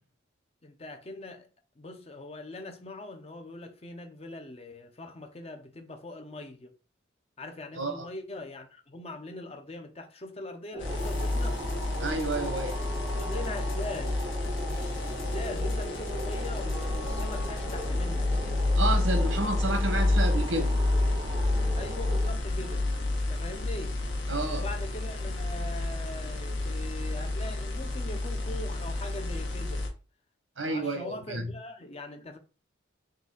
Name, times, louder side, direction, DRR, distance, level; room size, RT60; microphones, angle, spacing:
voice 1, 0.6-1.5 1.8-6.7 7.4-11.6 13.2-14.2 15.2-18.3 21.7-22.9 23.3-24.0 24.5-29.9 30.7-32.4, left 2 dB, 30° left, 0.6 m, -41 dB
sound 1, 10.7-22.3, right 1 dB, 20° right, 0.5 m, -40 dB
sound 2, 10.8-29.9, left 2 dB, 70° left, 1.0 m, -29 dB
Run Under The Sun, 11.0-17.9, left 3 dB, 50° left, 1.5 m, -44 dB
voice 2, 12.0-12.9 18.7-20.8 24.3-24.6 30.6-31.5, right 2 dB, 85° right, 1.1 m, -30 dB
3.8 x 2.7 x 3.9 m
head